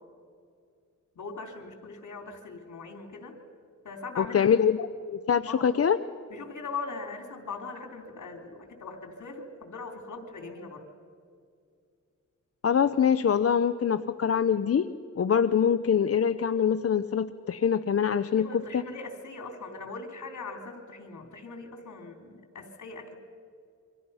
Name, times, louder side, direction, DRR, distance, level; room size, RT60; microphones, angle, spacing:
voice 1, 1.1-3.4 3.8-4.5 5.4-5.7 6.3-10.9 18.3-23.2, left 4 dB, 70° left, 5 dB, 3.3 m, -40 dB
voice 2, 4.2-6.0 12.6-14.9 15.2-18.8, left 7 dB, 50° left, 10 dB, 0.7 m, -24 dB
28.0 x 24.0 x 5.6 m, 2.3 s
wide cardioid pair, 95°, 31 cm